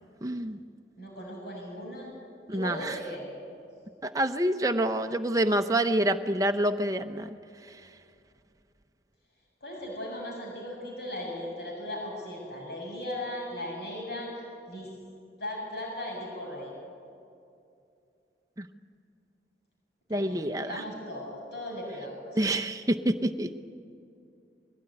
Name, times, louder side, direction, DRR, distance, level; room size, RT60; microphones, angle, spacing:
voice 1, 0.2-0.6 2.5-3.0 4.0-7.4 7.7-7.8 18.6-18.7 20.1-20.8 22.4-23.5, right 1 dB, 20° right, 7 dB, 0.8 m, -27 dB
voice 2, 1.0-2.2 2.5-3.3 9.6-14.3 14.7-14.9 15.4-16.7 20.1-22.2, left 1 dB, 65° left, -2 dB, 6.9 m, -37 dB
22.0 x 16.5 x 9.8 m, 2.5 s
head